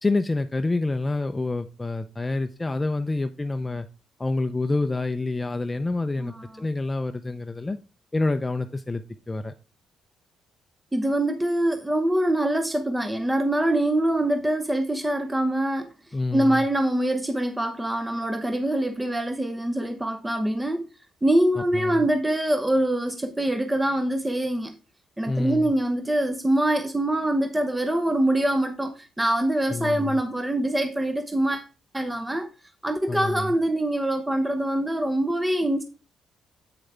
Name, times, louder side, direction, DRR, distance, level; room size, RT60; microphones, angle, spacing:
voice 1, 0.0-3.9 4.2-7.8 8.1-9.5 16.1-16.7 21.6-22.1 25.3-25.7 29.7-30.2 33.1-33.5, left 2 dB, 20° left, 0.6 m, -27 dB
voice 2, 6.2-6.5 10.9-15.9 16.3-20.9 21.2-24.8 25.2-31.7 31.9-32.5 32.8-35.8, right 1 dB, 10° right, 0.8 m, -24 dB
8.0 x 6.3 x 3.4 m
cardioid pair, 90°, 0 cm